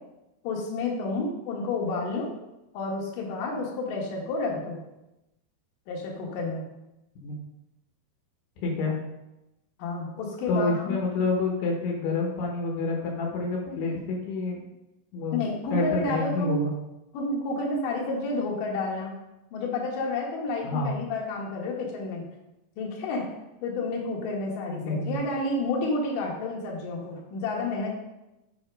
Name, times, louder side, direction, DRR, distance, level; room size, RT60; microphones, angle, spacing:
voice 1, 0.4-2.3 2.7-4.8 5.9-6.6 9.8-11.0 15.3-16.7 17.1-19.1 19.5-22.2 22.8-23.3 23.6-27.9, left 2 dB, 65° left, -2 dB, 2.8 m, -30 dB
voice 2, 8.6-9.0 10.5-14.6 15.1-15.4 15.7-16.7 20.6-21.0 24.7-25.2, left 3 dB, 80° left, 0 dB, 3.2 m, -28 dB
7.2 x 5.0 x 5.3 m, 0.94 s
omnidirectional pair, 4.7 m